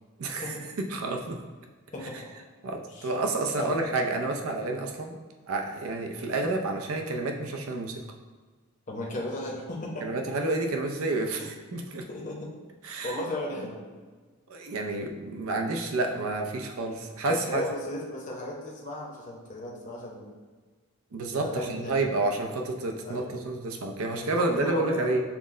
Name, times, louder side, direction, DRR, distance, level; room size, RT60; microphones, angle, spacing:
voice 1, 0.2-1.4 2.0-2.2 2.6-5.2 5.5-8.0 10.0-12.1 12.8-13.2 14.5-17.6 21.1-25.2, right 2 dB, 80° right, 3 dB, 0.6 m, -30 dB
voice 2, 1.9-2.4 2.9-3.1 3.6-3.8 8.9-10.1 11.4-11.5 12.1-12.5 13.0-13.8 17.3-20.3 21.3-22.5 23.0-23.3 24.2-25.1, left 1 dB, 35° left, -3 dB, 0.7 m, -35 dB
5.9 x 2.1 x 3.7 m, 1.4 s
head